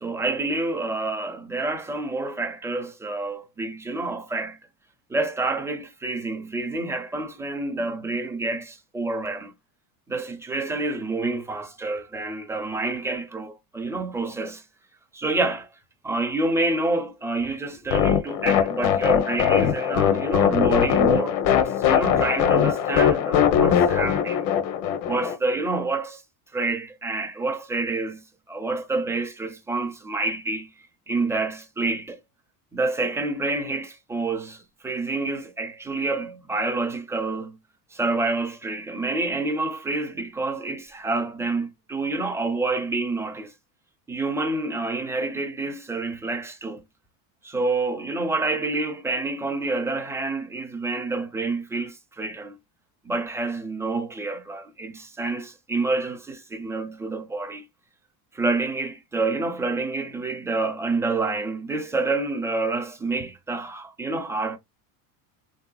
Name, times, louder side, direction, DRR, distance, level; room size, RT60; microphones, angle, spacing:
voice 1, 0.0-4.6 5.1-9.5 10.1-14.6 15.1-15.7 16.0-24.5 25.1-26.2 26.5-30.7 31.1-32.2 32.7-37.6 37.9-43.5 44.1-46.8 47.4-52.6 53.0-57.6 58.3-64.6, right 3 dB, 5° right, 0.5 m, -28 dB
sound 1, 17.9-25.3, left 8 dB, 70° left, 0.8 m, -21 dB
3.3 x 2.8 x 2.2 m
supercardioid pair, 120°, 42 cm